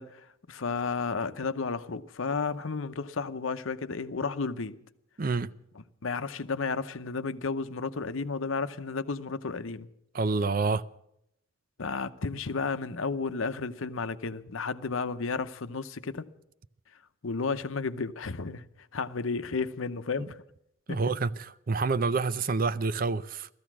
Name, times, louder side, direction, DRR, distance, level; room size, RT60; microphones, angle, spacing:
voice 1, 0.0-4.8 6.0-9.9 11.8-16.3 17.2-18.7 18.9-20.4 20.9-21.0, left 4 dB, 80° left, 0.8 m, -32 dB
voice 2, 5.2-5.5 10.1-10.8 20.2-20.3 20.9-23.5, right 4 dB, 45° right, 0.5 m, -28 dB
17.0 x 14.0 x 6.1 m
head